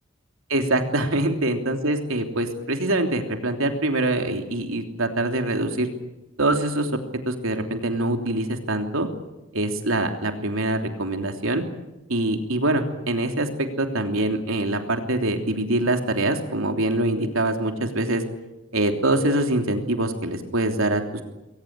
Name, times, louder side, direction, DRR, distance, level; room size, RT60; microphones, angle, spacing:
voice 1, 0.5-5.9 6.4-6.9 7.3-9.1 9.5-11.6 12.1-18.2 18.7-21.2, right 1 dB, 85° right, 5 dB, 3.1 m, -24 dB
22.0 x 19.0 x 9.7 m, 1.0 s
head